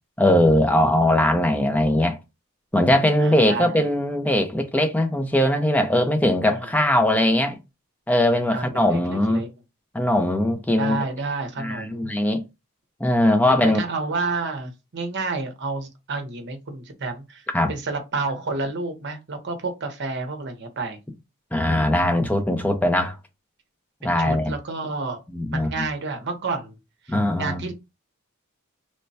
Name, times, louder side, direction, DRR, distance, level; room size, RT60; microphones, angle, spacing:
voice 1, 0.2-2.2 2.7-7.6 8.1-9.4 9.9-11.0 11.6-12.4 13.0-13.8 17.5-17.7 21.5-23.2 24.0-24.5 25.3-25.7 27.1-27.6, left 1 dB, 5° left, 0.5 m, -20 dB
voice 2, 3.2-3.8 6.5-6.7 8.5-9.5 10.8-12.1 13.4-21.0 24.0-25.2 25.5-26.8 27.1-27.7, right 3 dB, 50° right, 0.8 m, -30 dB
3.2 x 2.2 x 4.0 m
head